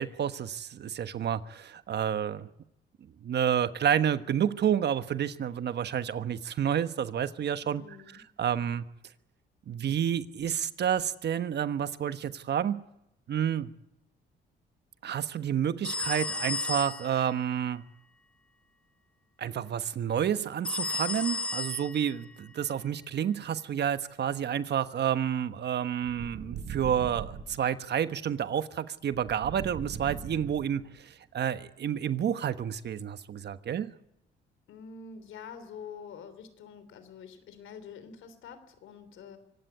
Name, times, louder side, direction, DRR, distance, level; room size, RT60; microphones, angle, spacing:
voice 1, 0.0-2.5 3.2-7.8 8.4-8.9 9.7-12.8 13.3-13.7 15.0-17.8 19.4-33.9, right 9 dB, 60° right, 12 dB, 1.3 m, -30 dB
voice 2, 7.6-8.2 34.7-39.4, left 6 dB, 80° left, 11 dB, 3.4 m, -46 dB
sound 1, 15.8-17.2 20.6-22.2, left 3 dB, 5° left, 1.5 m, -33 dB
sound 2, 26.0-27.6 29.1-30.9, right 7 dB, 80° right, 5.8 m, -40 dB
24.5 x 17.5 x 9.5 m, 0.84 s
cardioid pair, 90°, 20 cm